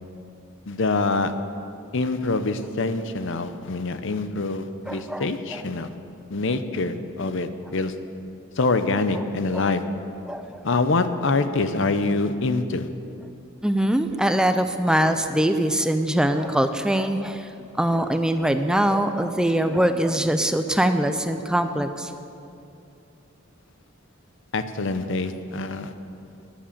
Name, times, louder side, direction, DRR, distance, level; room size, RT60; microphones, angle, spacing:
voice 1, 0.7-1.3 1.9-5.9 6.3-7.9 8.6-9.9 10.6-12.9 24.5-25.9, left 3 dB, 65° left, 10 dB, 0.7 m, -25 dB
voice 2, 4.9-5.6 9.1-9.2 9.5-9.7 10.3-10.6 13.6-17.5 17.8-22.1, right 1 dB, 5° right, 8 dB, 0.5 m, -23 dB
13.5 x 10.0 x 7.2 m, 2.6 s
head